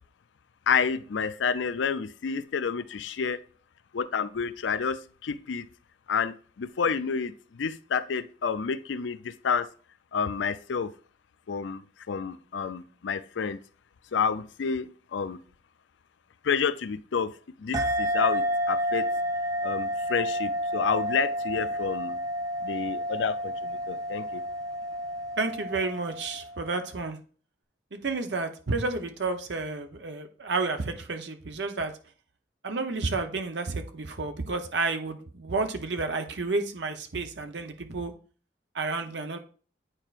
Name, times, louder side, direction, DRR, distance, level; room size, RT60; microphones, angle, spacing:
voice 1, 0.7-3.4 3.9-5.7 6.1-9.7 10.1-10.9 11.5-13.6 14.1-15.4 16.4-17.3 17.6-19.1 19.6-22.2 22.6-24.4, left 6 dB, 90° left, 13 dB, 0.4 m, -29 dB
sound 1, 17.7-26.8, equal, 20° right, 0.4 m, -30 dB
voice 2, 25.4-27.2 27.9-31.9 32.6-38.1 38.7-39.4, right 3 dB, 75° right, 7 dB, 0.8 m, -31 dB
8.9 x 4.4 x 2.5 m, 0.41 s
head